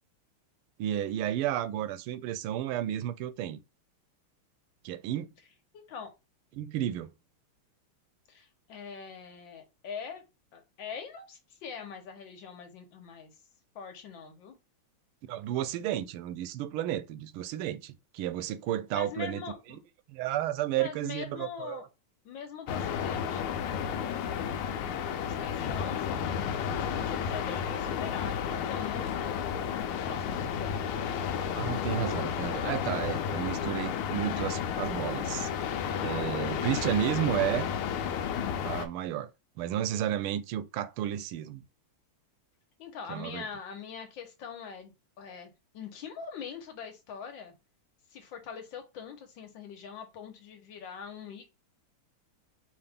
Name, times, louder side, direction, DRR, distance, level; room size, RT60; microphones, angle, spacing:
voice 1, 0.8-3.6 4.8-5.3 6.5-7.1 15.3-19.4 20.1-21.9 31.5-35.5 36.0-37.7 38.6-39.3 39.6-41.6 43.1-43.4, right 11 dB, 85° right, 1.4 m, -32 dB
voice 2, 5.7-6.1 8.3-10.2 10.5-13.3 13.7-14.5 18.9-19.8 20.8-21.9 22.2-23.6 23.9-24.6 25.2-29.6 30.0-30.8 42.8-44.9 45.2-47.5 48.1-51.5, left 6 dB, 65° left, 1.7 m, -43 dB
sound 1, 22.7-38.9, left 8 dB, 90° left, 1.5 m, -32 dB
4.8 x 2.9 x 3.4 m
omnidirectional pair, 2.3 m